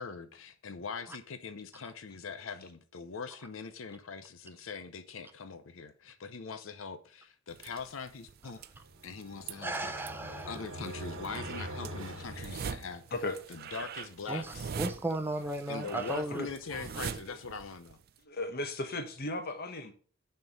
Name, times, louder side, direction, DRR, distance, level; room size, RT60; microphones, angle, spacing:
voice 1, 0.0-8.6 9.0-9.9 10.5-13.0 13.5-14.7 15.7-18.0, left 5 dB, 75° left, 0.6 m, -42 dB
sound 1, 7.5-18.2, right 6 dB, 50° right, 0.4 m, -43 dB
sound 2, 8.8-13.2, right 1 dB, 85° right, 1.4 m, -44 dB
voice 2, 9.5-10.7 14.3-16.8, right 1 dB, 10° right, 0.6 m, -36 dB
voice 3, 18.2-19.9, left 2 dB, 50° left, 1.0 m, -36 dB
6.5 x 4.5 x 5.0 m
head